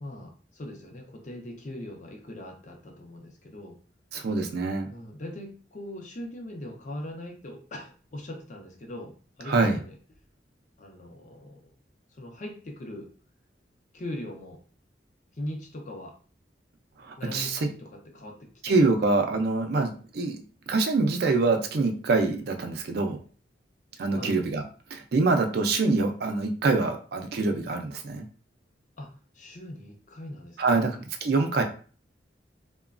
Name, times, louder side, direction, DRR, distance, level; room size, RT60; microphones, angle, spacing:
voice 1, 0.0-3.8 4.9-9.9 10.8-11.7 12.1-13.1 13.9-14.6 15.4-16.2 17.2-18.8 24.1-24.4 29.0-31.0, left 1 dB, 45° left, 3 dB, 0.6 m, -41 dB
voice 2, 4.1-4.9 9.5-9.8 17.0-17.7 18.6-20.4 20.7-23.2 24.0-24.6 24.9-28.3 30.6-31.6, right 3 dB, 60° right, 5 dB, 0.4 m, -25 dB
3.0 x 2.2 x 2.4 m, 0.40 s
head